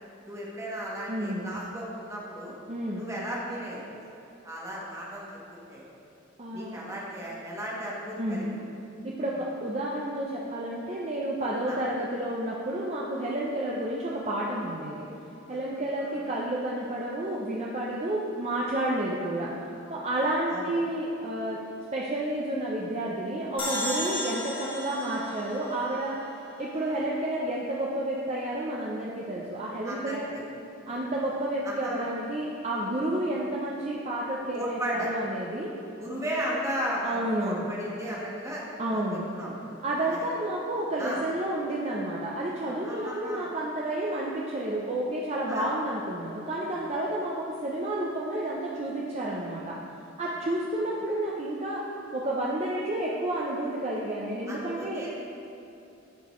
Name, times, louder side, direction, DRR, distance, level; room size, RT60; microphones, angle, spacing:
voice 1, 0.2-2.5 3.0-3.8 4.4-5.9 6.5-8.4 11.7-11.8 15.5-15.6 16.0-16.2 20.5-20.7 26.7-27.0 29.8-30.4 30.9-31.0 31.6-32.1 34.5-35.1 36.0-38.6 38.9-39.0 39.4-39.8 40.1-40.3 41.0-41.2 42.8-43.5 45.5-45.7 54.5-55.1, equal, 15° right, -5 dB, 1.4 m, -35 dB
voice 2, 1.1-1.5 2.7-3.1 6.4-6.8 8.2-8.6 9.0-15.1 15.5-19.5 19.9-21.6 21.9-26.1 26.6-30.3 30.9-35.7 37.0-37.7 38.8-39.3 39.8-49.8 50.2-51.8 52.1-55.0, right 1 dB, 35° right, -4 dB, 0.6 m, -30 dB
sound 1, 23.6-26.9, left 1 dB, 25° left, 1.0 m, -35 dB
13.5 x 4.9 x 3.1 m, 2.7 s
head